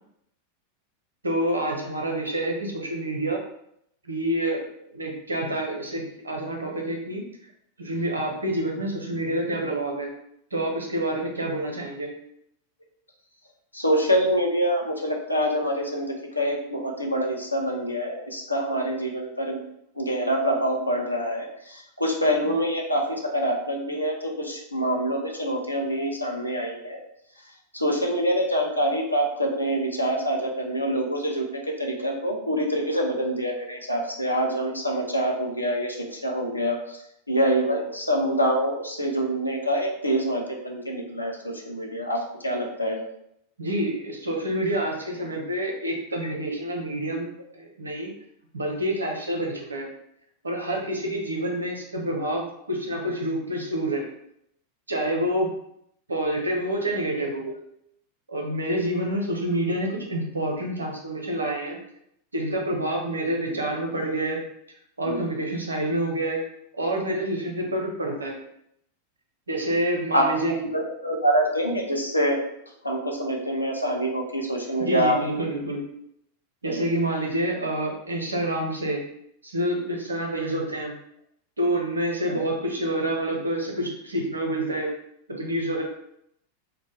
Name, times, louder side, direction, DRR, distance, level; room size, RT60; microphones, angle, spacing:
voice 1, 1.2-3.4 4.1-4.7 4.9-7.2 7.8-10.1 10.5-12.1 43.6-48.1 48.5-49.9 50.4-54.1 54.9-55.5 56.1-57.4 58.3-61.8 62.3-64.4 65.0-66.4 66.7-68.3 69.5-70.5 74.8-75.8 76.6-79.0 79.4-80.9 81.6-84.9 85.3-85.8, right 1 dB, 75° right, 1 dB, 0.6 m, -27 dB
voice 2, 13.7-19.6 20.0-27.0 27.7-37.0 37.3-43.0 65.1-65.2 70.1-72.4 72.8-75.2 76.6-76.8 82.3-82.4, equal, 85° left, 0 dB, 0.5 m, -26 dB
2.1 x 2.0 x 3.2 m, 0.74 s
figure-of-eight pair, 90°, 0 cm